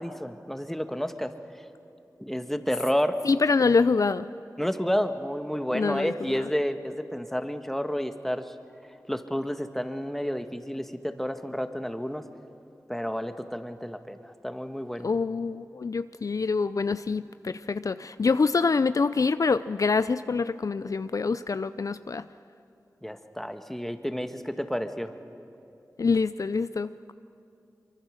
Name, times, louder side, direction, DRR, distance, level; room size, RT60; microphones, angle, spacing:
voice 1, 0.0-1.3 2.2-3.2 4.6-8.5 9.1-12.2 12.9-15.1 23.0-25.1, equal, 5° left, 8 dB, 1.4 m, -30 dB
voice 2, 3.2-4.3 5.7-6.4 15.0-22.2 26.0-26.9, left 4 dB, 60° left, 13 dB, 0.4 m, -25 dB
24.0 x 23.5 x 6.5 m, 2.7 s
cardioid pair, 45°, 6 cm